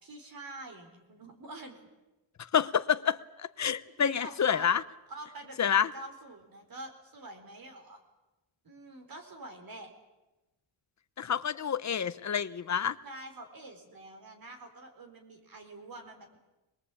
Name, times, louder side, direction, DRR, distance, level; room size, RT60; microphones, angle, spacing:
voice 1, 0.0-1.8 4.0-4.7 5.1-8.0 8.6-9.9 13.0-16.4, right 2 dB, 50° right, 4 dB, 4.4 m, -46 dB
voice 2, 2.5-4.8 5.6-5.9 11.2-13.0, left 8 dB, 40° left, 13 dB, 0.8 m, -28 dB
25.5 x 21.5 x 8.5 m, 1.1 s
wide cardioid pair, 170°, 45 cm